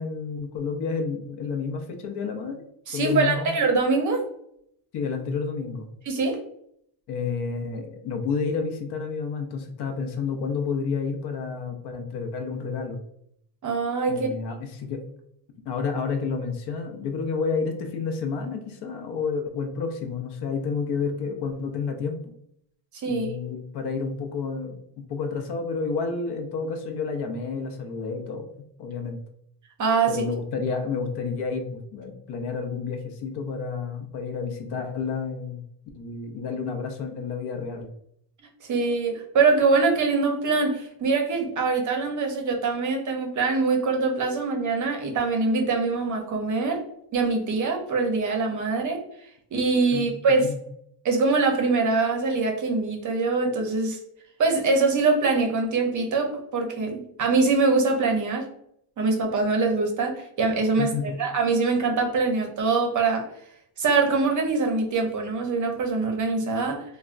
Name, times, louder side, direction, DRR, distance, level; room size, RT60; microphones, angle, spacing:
voice 1, 0.0-2.6 2.9-3.5 4.9-5.9 7.1-13.0 14.1-15.0 15.7-22.3 23.1-28.5 28.8-29.2 30.1-35.6 35.9-37.9 49.9-50.6 60.8-61.1, left 5 dB, 60° left, 5 dB, 0.6 m, -30 dB
voice 2, 2.9-4.2 6.1-6.4 13.6-14.3 23.0-23.3 29.8-30.2 38.7-46.8 47.1-49.0 49.5-50.4 51.0-54.0 54.4-58.5 59.0-60.9 61.2-63.3 63.8-66.8, right 4 dB, 40° right, 3 dB, 0.6 m, -23 dB
3.3 x 2.1 x 2.4 m, 0.70 s
cardioid pair, 125°, 47 cm